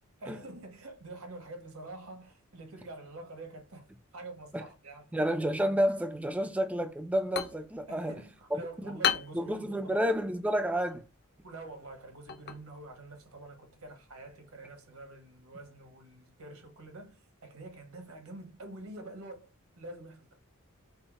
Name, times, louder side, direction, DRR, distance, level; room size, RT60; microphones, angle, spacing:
voice 1, 0.2-5.3 7.9-10.0 11.4-20.3, right 2 dB, 75° right, 1.2 m, -47 dB
voice 2, 5.1-8.1 8.5-9.0 9.3-11.1, equal, 5° right, 0.3 m, -30 dB
sound 1, 7.0-14.5, left 9 dB, 45° left, 0.6 m, -38 dB
5.5 x 2.0 x 4.0 m
head